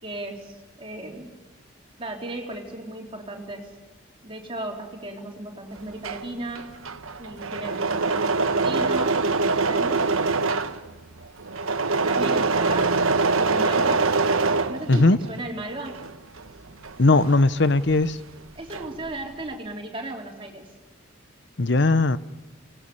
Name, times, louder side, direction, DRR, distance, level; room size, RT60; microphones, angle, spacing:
voice 1, 0.0-1.3 2.0-3.8 4.2-6.7 7.2-10.1 12.0-13.0 13.4-14.2 14.7-16.0 18.5-20.7, right 1 dB, 25° right, 0 dB, 3.8 m, -35 dB
Engine / Mechanisms, 5.8-15.4 15.7-18.1 18.3-19.1, right 3 dB, 85° right, 1.1 m, -24 dB
voice 2, 17.0-18.2 21.6-22.2, left 2 dB, 55° left, 15 dB, 0.8 m, -18 dB
26.5 x 19.5 x 7.0 m, 1.2 s
head